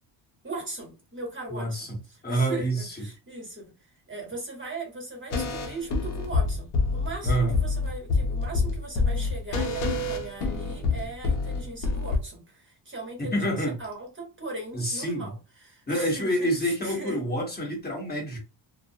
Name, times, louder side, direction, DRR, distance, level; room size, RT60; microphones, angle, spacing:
voice 1, 0.4-3.7 4.1-17.2, right 2 dB, 25° right, 1.0 m, -39 dB
voice 2, 1.5-2.0 2.2-2.9 7.2-7.6 13.2-13.8 14.7-15.3 15.9-18.4, right 1 dB, 20° left, 1.1 m, -27 dB
sound 1, 5.3-12.2, left 3 dB, 90° left, 0.8 m, -27 dB
2.3 x 2.0 x 2.6 m
cardioid pair, 100°, 49 cm